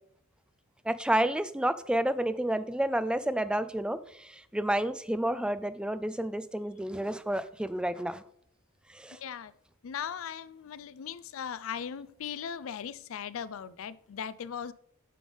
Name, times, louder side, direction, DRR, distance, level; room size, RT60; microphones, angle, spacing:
voice 1, 0.9-8.2 8.9-9.2, right 1 dB, 5° right, 0.3 m, -30 dB
voice 2, 9.1-9.5 9.8-14.7, left 8 dB, 75° left, 0.4 m, -38 dB
8.5 x 5.4 x 3.4 m
head